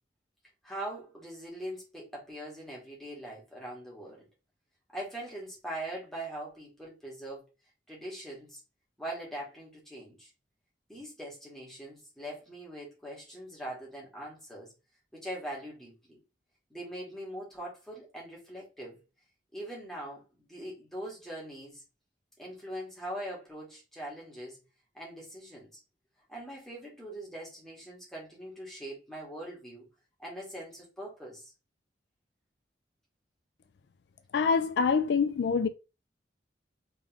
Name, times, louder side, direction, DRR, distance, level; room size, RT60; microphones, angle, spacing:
voice 1, 0.6-4.3 4.9-7.5 7.9-8.6 9.0-10.3 10.9-14.7 15.1-16.2 16.7-19.0 19.5-21.8 22.4-24.6 24.9-25.8 26.3-29.9 30.2-31.5, right 1 dB, ahead, 1.7 m, -42 dB
voice 2, 34.3-35.7, left 5 dB, 65° left, 0.3 m, -25 dB
3.7 x 3.5 x 3.0 m
head